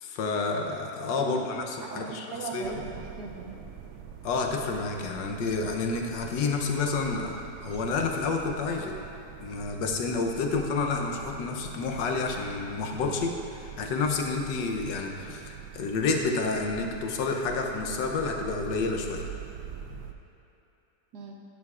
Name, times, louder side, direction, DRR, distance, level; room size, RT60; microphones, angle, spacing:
voice 1, 0.0-2.3 2.5-2.8 4.2-9.0 9.4-19.2, left 4 dB, 80° left, 2 dB, 1.4 m, -29 dB
voice 2, 1.1-1.5 1.8-3.6 21.1-21.3, right 4 dB, 65° right, 0 dB, 1.5 m, -38 dB
sound 1, 2.6-20.1, right 8 dB, 90° right, 1.3 m, -44 dB
11.0 x 10.5 x 2.4 m, 2.8 s
omnidirectional pair, 1.9 m